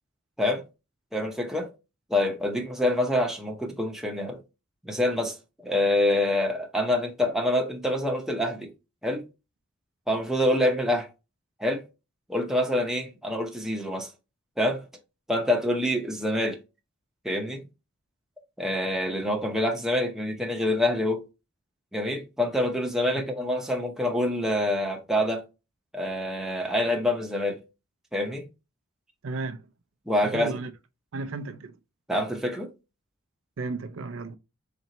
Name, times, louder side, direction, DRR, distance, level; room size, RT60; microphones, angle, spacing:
voice 1, 1.1-1.7 2.1-4.4 4.8-5.4 5.6-8.7 9.0-9.2 10.1-11.1 11.6-11.8 12.3-14.1 14.6-14.8 15.3-16.6 17.2-17.6 18.6-21.2 21.9-25.4 25.9-27.6 28.1-28.5 30.1-30.6 32.1-32.7, left 1 dB, ahead, 0.8 m, -26 dB
voice 2, 29.2-29.6 30.2-30.7 31.1-31.7 33.6-34.4, right 3 dB, 70° right, 0.5 m, -34 dB
4.4 x 4.0 x 2.9 m
head